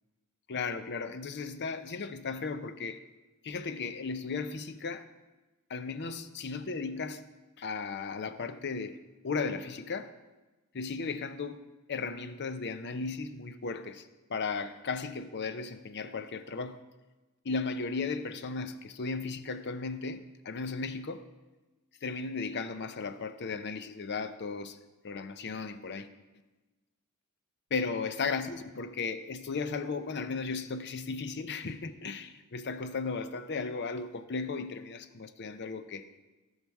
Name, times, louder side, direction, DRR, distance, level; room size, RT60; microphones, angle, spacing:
voice 1, 0.5-3.0 3.4-5.0 5.7-7.2 7.6-9.0 9.2-10.1 10.7-11.6 11.9-16.8 17.4-21.2 22.0-24.8 25.0-26.1 27.7-36.1, left 4 dB, 55° left, 0.6 m, -35 dB
17.0 x 5.7 x 4.7 m
head